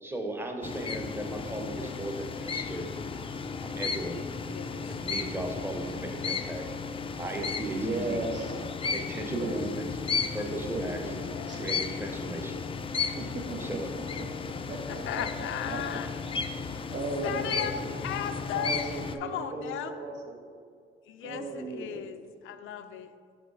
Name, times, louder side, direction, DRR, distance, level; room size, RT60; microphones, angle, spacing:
voice 1, 0.0-2.9 3.6-4.2 4.7-6.6 7.2-8.3 8.9-9.9 10.3-11.0 11.5-12.6 13.5-13.9, right 1 dB, 10° right, 3 dB, 0.9 m, -36 dB
sound 1, 0.6-19.2, left 5 dB, 25° left, 0.4 m, -34 dB
voice 2, 4.5-5.0 5.5-5.8 11.2-11.8 14.9-16.1 17.2-18.8 19.2-19.9 21.1-22.2 22.4-23.1, left 9 dB, 80° left, 9 dB, 0.5 m, -36 dB
voice 3, 7.7-8.5 9.2-9.6 10.7-11.2 11.5-11.6 13.1-13.6 14.2-14.3 14.7-15.2 15.7-15.8 16.6-18.0 18.5-20.4 21.2-22.0, right 2 dB, 60° right, 0 dB, 1.3 m, -36 dB
5.5 x 5.1 x 4.7 m, 2.1 s
cardioid pair, 90°, 20 cm